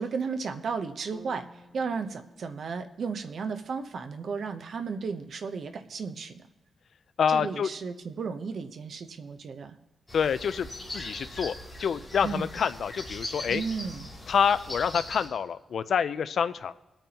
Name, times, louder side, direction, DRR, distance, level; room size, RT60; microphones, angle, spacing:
voice 1, 0.0-6.5 7.3-9.8 12.2-12.5 13.5-14.1, right 5 dB, 60° right, 7 dB, 0.8 m, -34 dB
sound 1, 1.1-5.2, equal, 20° right, 1.6 m, -57 dB
voice 2, 7.2-7.7 10.1-10.7 10.9-11.5 11.8-13.6 14.3-16.8, left 7 dB, 70° left, 13 dB, 0.4 m, -27 dB
sound 2, 10.1-15.3, left 1 dB, 10° left, 2.8 m, -40 dB
23.0 x 8.9 x 2.9 m, 1.1 s
wide cardioid pair, 155°, 0 cm